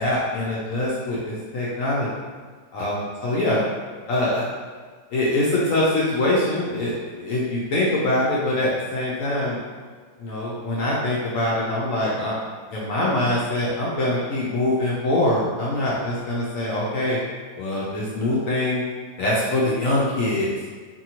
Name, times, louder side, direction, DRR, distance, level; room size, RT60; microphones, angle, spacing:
voice 1, 0.0-2.1 2.7-3.6 4.1-4.5 5.1-9.6 10.2-12.4 12.7-17.2 17.6-18.8 19.2-20.5, left 1 dB, 65° left, -6 dB, 0.9 m, -23 dB
2.7 x 2.6 x 2.8 m, 1.5 s
omnidirectional pair, 1.8 m